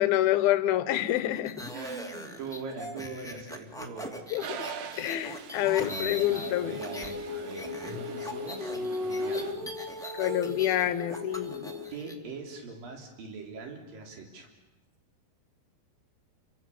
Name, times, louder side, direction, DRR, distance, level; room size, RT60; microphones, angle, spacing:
voice 1, 0.0-1.6 4.3-4.7 5.0-6.8 10.2-11.8, left 13 dB, 70° left, 13 dB, 2.7 m, -27 dB
sound 1, 1.3-7.2 7.4-12.1, equal, ahead, 1.0 m, -41 dB
voice 2, 1.7-4.2 5.8-9.7 11.9-14.5, right 4 dB, 60° right, 2 dB, 5.1 m, -42 dB
Toilet flush, 4.3-9.5, right 7 dB, 80° right, 3.5 m, -43 dB
Female singing, 6.3-12.0, left 3 dB, 30° right, 3.2 m, -37 dB
30.0 x 24.5 x 7.2 m, 1.0 s
omnidirectional pair, 4.8 m